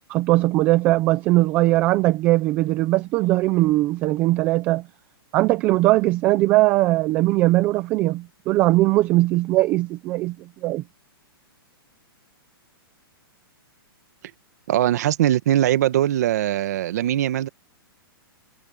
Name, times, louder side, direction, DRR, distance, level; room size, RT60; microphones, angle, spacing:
voice 1, 0.1-4.9 5.3-10.8, right 18 dB, 10° right, 0.3 m, -20 dB
voice 2, 14.7-17.5, right 12 dB, 45° right, 1.6 m, -21 dB
hypercardioid pair, 175°, 13 cm